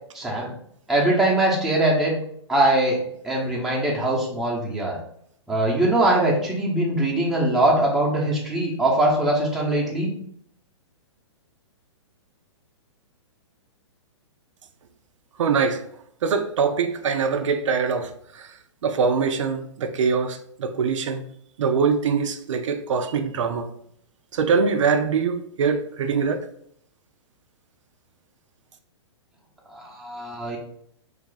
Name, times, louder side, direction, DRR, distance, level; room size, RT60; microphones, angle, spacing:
voice 1, 0.1-0.5 0.9-2.1 2.5-3.0 3.2-5.0 5.5-10.1 29.7-30.6, right 1 dB, ahead, 0.8 m, -22 dB
voice 2, 15.4-15.8 16.2-18.1 18.4-18.5 18.8-21.2 21.6-23.7 24.3-26.5, right 5 dB, 75° right, 0.4 m, -23 dB
3.2 x 2.4 x 3.8 m
hypercardioid pair, 135°, 16 cm